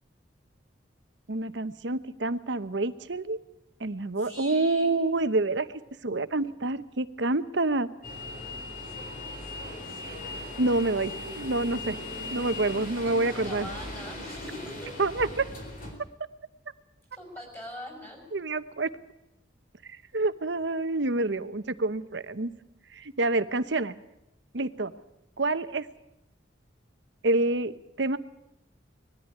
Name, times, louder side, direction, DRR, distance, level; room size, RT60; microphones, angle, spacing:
voice 1, 1.3-3.4 3.8-5.7 6.0-7.9 10.6-12.0 12.3-13.7 15.0-15.4 18.3-18.9 20.1-22.5 22.9-23.9 24.5-24.9 25.4-25.9 27.2-28.2, right 2 dB, 75° right, 12 dB, 1.0 m, -27 dB
voice 2, 4.2-5.0 13.0-14.9 17.1-18.2, equal, 10° left, 2 dB, 5.7 m, -42 dB
sound 1, 8.0-15.9, left 2 dB, 45° left, 4.1 m, -38 dB
20.5 x 13.5 x 9.5 m, 0.86 s
head